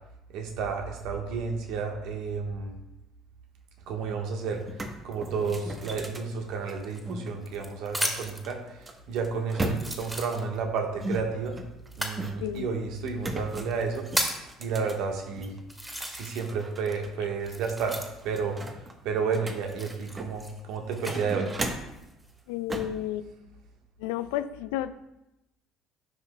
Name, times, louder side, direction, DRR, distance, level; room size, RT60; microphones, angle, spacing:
voice 1, 0.3-2.7 3.9-4.6 5.0-11.6 12.0-14.1 14.6-15.6 16.1-18.6 19.0-21.5, right 5 dB, 65° right, 3 dB, 1.3 m, -31 dB
sound 1, 4.1-4.2 4.5-7.3 8.2-10.2 11.0-12.6 13.2-15.6 16.0-17.1 17.4-17.5 17.9-20.5 20.9-22.0 22.7-23.0, right 1 dB, 25° right, 1.1 m, -37 dB
sound 2, 6.8-8.5 9.2-9.3 9.7-10.8 11.9-12.2 13.1-13.2 13.7-14.5 15.2-15.3 15.7-16.6 16.9-18.4 19.6-21.2 21.8-22.3, equal, 10° right, 2.3 m, -34 dB
voice 2, 22.5-23.3 24.0-24.9, left 12 dB, 70° left, 13 dB, 0.4 m, -31 dB
13.0 x 5.7 x 2.3 m, 0.90 s
hypercardioid pair, 60°, 0 cm